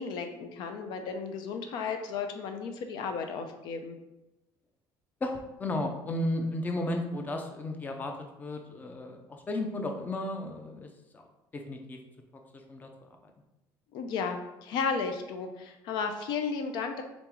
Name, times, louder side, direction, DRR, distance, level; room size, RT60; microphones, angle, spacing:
voice 1, 0.0-4.0 13.9-17.0, left 5 dB, 70° left, 6 dB, 0.4 m, -34 dB
voice 2, 5.2-8.1 8.4-9.2 9.5-10.9 11.1-11.2 11.5-12.0 12.7-12.9, left 1 dB, 20° left, 4 dB, 0.5 m, -33 dB
3.8 x 3.5 x 3.0 m, 0.95 s
cardioid pair, 125°, 8 cm